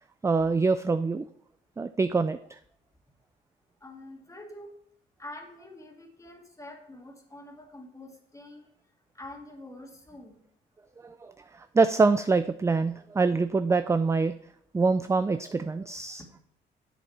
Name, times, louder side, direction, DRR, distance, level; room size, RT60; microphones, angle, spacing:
voice 1, 0.2-1.2 1.8-2.6 11.0-14.3 14.7-16.2, right 4 dB, 15° right, 11 dB, 0.3 m, -25 dB
voice 2, 3.8-4.7 5.2-8.7 9.1-10.4 16.2-16.4, left 1 dB, 15° left, 2 dB, 2.1 m, -46 dB
10.0 x 7.6 x 4.2 m, 0.67 s
cardioid pair, 90°, 20 cm